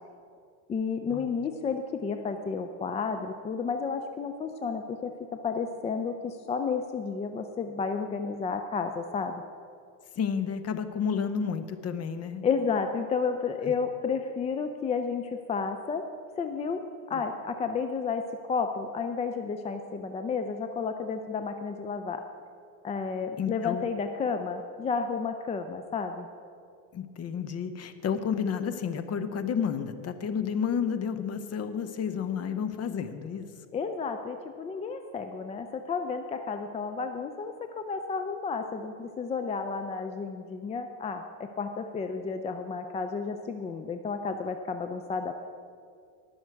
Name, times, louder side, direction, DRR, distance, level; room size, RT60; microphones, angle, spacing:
voice 1, 0.7-9.4 12.4-16.1 16.4-22.3 22.8-26.3 33.7-45.3, left 5 dB, 15° left, 7 dB, 0.3 m, -32 dB
voice 2, 10.2-12.4 17.1-17.2 23.4-23.8 26.9-33.5, left 7 dB, 35° left, 10 dB, 0.9 m, -31 dB
19.0 x 6.5 x 4.7 m, 2.3 s
supercardioid pair, 100°, 46 cm